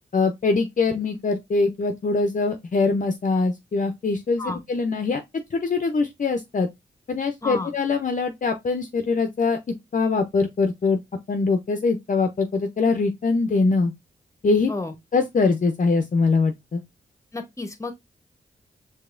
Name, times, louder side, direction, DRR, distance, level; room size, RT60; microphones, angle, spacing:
voice 1, 0.1-5.2 5.5-6.7 7.1-9.6 9.9-11.0 11.3-13.9 14.4-14.7 15.1-16.8, left 4 dB, 45° left, 0.6 m, -23 dB
voice 2, 7.4-7.7 14.7-14.9 17.3-17.9, left 2 dB, 15° left, 0.9 m, -31 dB
4.7 x 2.8 x 2.5 m
supercardioid pair, 40°, 19 cm